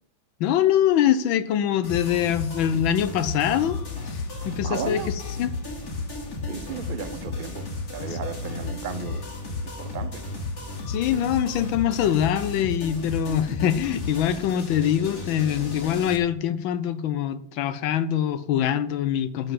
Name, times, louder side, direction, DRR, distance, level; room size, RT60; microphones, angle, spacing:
voice 1, 0.4-3.8 4.1-5.5 8.1-8.2 10.9-19.5, left 10 dB, 85° left, 13 dB, 1.4 m, -24 dB
sound 1, 1.8-16.2, left 3 dB, 50° left, 3.1 m, -33 dB
voice 2, 4.6-5.1 6.4-7.7 7.9-9.2 9.6-10.2, right 6 dB, 55° right, 10 dB, 0.5 m, -34 dB
12.0 x 5.3 x 7.5 m, 0.71 s
omnidirectional pair, 2.1 m